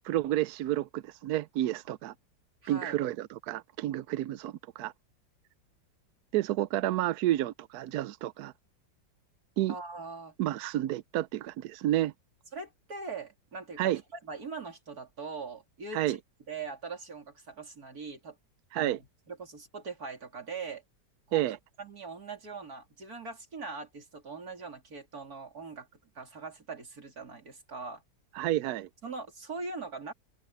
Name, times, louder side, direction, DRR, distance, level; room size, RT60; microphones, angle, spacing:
voice 1, 0.0-2.1 2.7-4.9 6.3-8.5 9.6-9.7 10.4-12.1 13.8-14.0 15.9-16.2 18.7-19.0 21.3-21.6 28.3-28.9, right 14 dB, 70° right, 1.0 m, -30 dB
voice 2, 2.6-3.0 9.7-10.3 12.5-13.8 14.3-16.2 16.5-18.4 18.7-19.0 19.3-20.8 21.3-25.9 26.2-28.0 29.0-30.1, right 4 dB, 55° right, 3.7 m, -41 dB
omnidirectional pair, 2.0 m